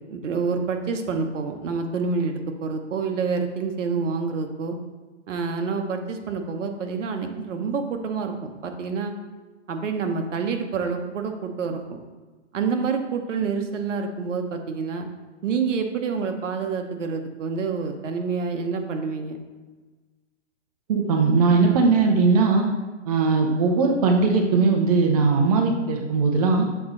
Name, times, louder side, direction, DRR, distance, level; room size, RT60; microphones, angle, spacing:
voice 1, 0.1-2.3 2.6-4.8 5.3-9.1 9.7-12.0 12.5-15.1 15.4-19.4, right 5 dB, 75° right, 5 dB, 1.0 m, -27 dB
voice 2, 20.9-22.7 23.1-26.7, right 4 dB, 30° right, 2 dB, 0.7 m, -19 dB
6.9 x 4.3 x 3.8 m, 1.3 s
hypercardioid pair, 160°, 37 cm